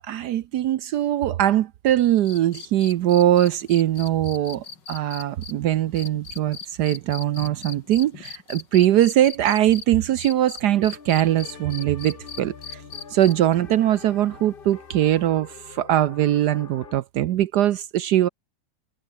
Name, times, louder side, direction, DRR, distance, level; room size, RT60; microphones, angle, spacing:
voice 1, 0.0-12.8 13.1-18.3, right 12 dB, 70° right, 1.1 m, -21 dB
sound 1, 2.2-9.8 10.2-13.5 15.2-15.3, left 5 dB, 60° left, 3.0 m, -39 dB
sound 2, 10.7-17.0, left 5 dB, 30° left, 1.2 m, -45 dB
omnidirectional pair, 2.2 m